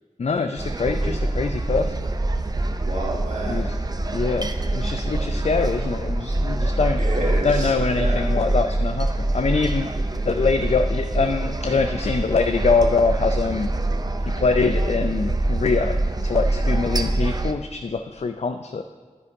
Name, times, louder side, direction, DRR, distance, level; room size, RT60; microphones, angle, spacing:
voice 1, 0.2-2.1 3.5-3.8 4.1-7.0 7.4-9.9 10.3-13.7 14.3-18.8, left 4 dB, 60° left, 7 dB, 0.4 m, -24 dB
sound 1, 0.6-17.5, right 2 dB, 30° right, 0.5 m, -25 dB
voice 2, 2.9-3.8 7.0-8.3, right 1 dB, 75° right, -3 dB, 1.9 m, -29 dB
9.8 x 9.7 x 2.7 m, 1.5 s
wide cardioid pair, 55°, 13 cm